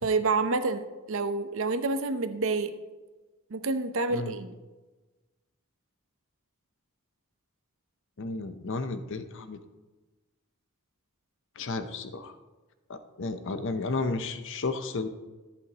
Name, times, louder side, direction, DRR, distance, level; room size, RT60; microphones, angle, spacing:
voice 1, 0.0-2.7 3.5-4.5, right 3 dB, 65° right, 10 dB, 0.7 m, -28 dB
voice 2, 8.2-9.6 11.6-12.3 12.9-15.1, left 3 dB, 60° left, 10 dB, 0.7 m, -33 dB
14.0 x 8.3 x 2.9 m, 1.2 s
head